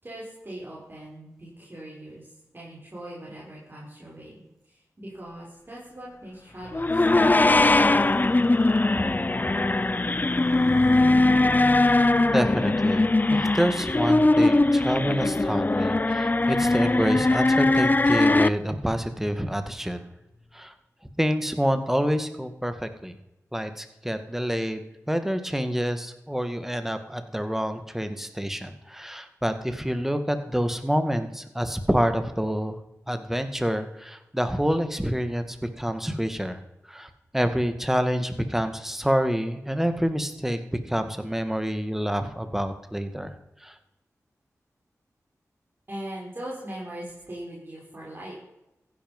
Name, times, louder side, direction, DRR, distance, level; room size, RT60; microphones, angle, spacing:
voice 1, 0.0-8.1 9.0-9.1 9.5-9.6 45.9-48.3, right 1 dB, 35° right, -6 dB, 6.4 m, -40 dB
Car passing by / Truck, 6.6-20.3, left 3 dB, 55° left, 1.3 m, -38 dB
sound 1, 6.7-18.5, left 2 dB, 30° left, 0.7 m, -21 dB
voice 2, 12.3-20.0 20.5-20.7 21.2-23.1 23.5-32.8 33.1-36.6 36.9-40.6 40.9-43.3 43.6-43.7, equal, 5° right, 9 dB, 2.1 m, -27 dB
15.5 x 11.0 x 5.5 m, 0.89 s
cardioid pair, 45°, 6 cm